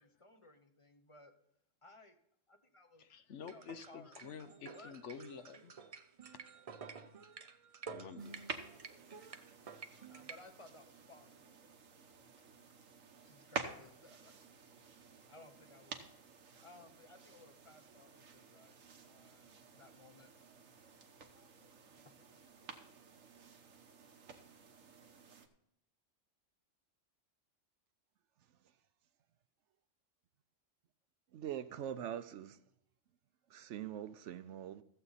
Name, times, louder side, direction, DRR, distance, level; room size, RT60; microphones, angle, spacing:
voice 1, 0.0-1.3 1.8-2.2 2.5-3.0 3.5-4.2 4.7-5.0 10.1-11.7 12.1-12.5 13.2-14.4 15.3-16.1 16.6-20.7 21.5-21.7 22.0-22.8, left 2 dB, 25° left, 0.9 m, -60 dB
voice 2, 3.0-5.7 6.9-7.0 7.9-8.5, left 7 dB, 70° left, 1.0 m, -50 dB
sound 1, 3.4-10.4, right 6 dB, 40° right, 0.5 m, -51 dB
sound 2, 8.2-25.5, right 5 dB, 90° right, 1.5 m, -51 dB
voice 3, 31.3-32.6 33.5-34.8, right 10 dB, 70° right, 0.9 m, -43 dB
14.5 x 7.8 x 4.1 m
omnidirectional pair, 1.3 m